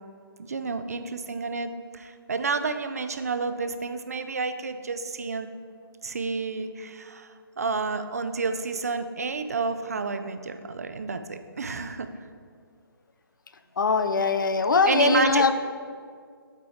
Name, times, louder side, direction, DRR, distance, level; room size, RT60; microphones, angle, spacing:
voice 1, 0.4-5.5 6.0-12.1 14.9-15.5, right 4 dB, 40° right, 9 dB, 0.4 m, -30 dB
voice 2, 13.8-15.5, left 4 dB, 55° left, 10 dB, 0.5 m, -21 dB
8.2 x 4.4 x 4.9 m, 2.1 s
hypercardioid pair, 170°, 13 cm